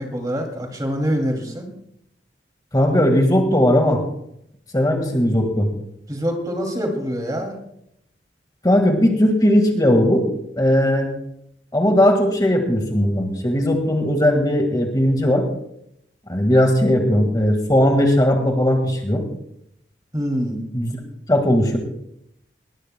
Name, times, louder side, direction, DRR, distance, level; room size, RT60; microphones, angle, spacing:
voice 1, 0.0-1.7 6.1-7.6 20.1-20.6, equal, 20° right, 2 dB, 2.5 m, -25 dB
voice 2, 2.7-4.0 4.7-5.7 8.6-10.2 10.6-11.1 11.7-15.4 16.3-19.2 20.7-21.0 21.3-21.8, left 1 dB, 20° left, 3 dB, 1.7 m, -18 dB
20.5 x 19.5 x 2.2 m, 0.77 s
head